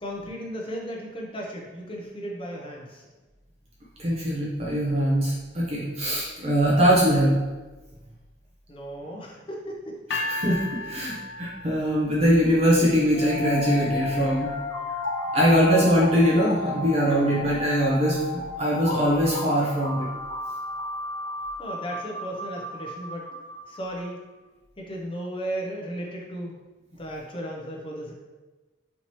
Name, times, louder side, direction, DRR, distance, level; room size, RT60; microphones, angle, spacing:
voice 1, 0.0-3.0 8.7-10.4 21.6-23.3 23.7-24.2 24.8-26.6 27.0-28.1, equal, 30° left, -1 dB, 0.6 m, -35 dB
voice 2, 4.0-7.4 10.1-14.5 15.3-20.1, equal, 35° right, -5 dB, 0.6 m, -22 dB
sound 1, 10.1-12.2, left 3 dB, 75° left, 0.5 m, -33 dB
sound 2, 13.1-24.1, left 3 dB, 80° right, 1.4 m, -33 dB
4.4 x 2.8 x 3.0 m, 1.2 s
head